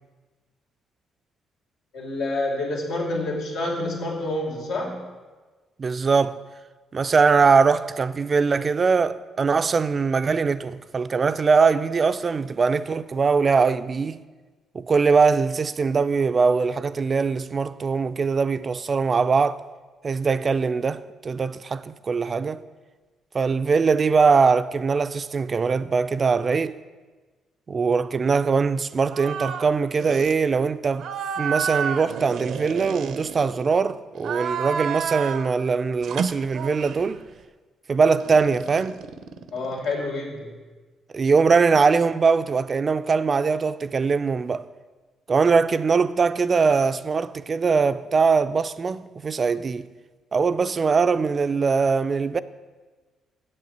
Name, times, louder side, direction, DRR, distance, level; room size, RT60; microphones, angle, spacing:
voice 1, 1.9-5.0 39.5-40.6, left 2 dB, 85° left, 2.9 m, -28 dB
voice 2, 5.8-6.4 6.9-14.2 14.7-19.6 20.0-22.6 23.3-26.8 27.7-31.1 31.4-37.2 37.9-39.0 41.1-44.6 45.3-49.9 50.3-52.4, right 5 dB, 40° right, 0.5 m, -21 dB
sound 1, 29.1-29.7 30.0-30.4 31.0-33.7 34.2-35.5 36.0-37.1 38.2-40.0, right 7 dB, 75° right, 0.7 m, -30 dB
7.9 x 7.5 x 7.9 m
cardioid pair, 90°, 0 cm